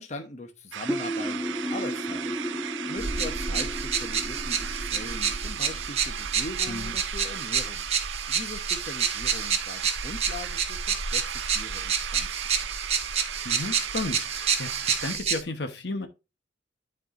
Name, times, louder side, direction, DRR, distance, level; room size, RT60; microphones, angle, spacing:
voice 1, 0.0-7.9 8.3-12.4, left 2 dB, 35° left, 1.0 m, -41 dB
sound 1, 0.7-15.2, right 9 dB, 80° right, 0.5 m, -37 dB
sound 2, 0.9-6.4, equal, ahead, 0.6 m, -34 dB
sound 3, 3.0-15.4, right 6 dB, 30° right, 1.1 m, -29 dB
voice 2, 13.4-16.1, left 2 dB, 60° left, 1.1 m, -33 dB
12.0 x 4.6 x 2.6 m
head